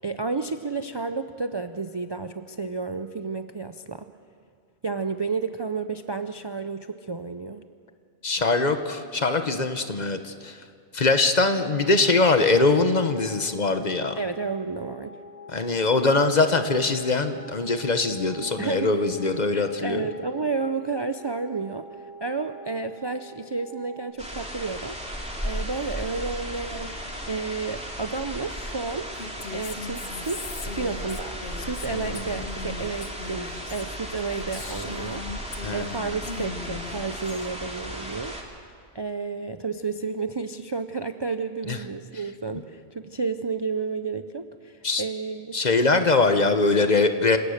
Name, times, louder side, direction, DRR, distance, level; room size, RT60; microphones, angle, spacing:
voice 1, 0.0-4.1 4.8-7.6 14.2-15.2 18.6-18.9 19.5-21.9 22.2-25.0 25.4-26.9 27.2-29.1 29.5-35.2 35.7-38.4 38.9-45.5, right 4 dB, 35° right, 9 dB, 0.5 m, -31 dB
voice 2, 8.2-10.6 10.9-14.1 15.5-20.1 31.9-32.4 35.6-36.1 41.6-41.8 44.8-45.0 45.5-47.4, left 3 dB, 40° left, 8 dB, 1.2 m, -22 dB
sound 1, 11.8-24.1, equal, 85° right, 8.0 m, -46 dB
sound 2, 24.2-38.4, equal, 5° right, 2.6 m, -35 dB
Female speech woman speaking, 29.1-36.0 36.2-37.5, left 4 dB, 75° left, 1.7 m, -39 dB
27.5 x 17.5 x 6.5 m, 2.4 s
omnidirectional pair, 1.1 m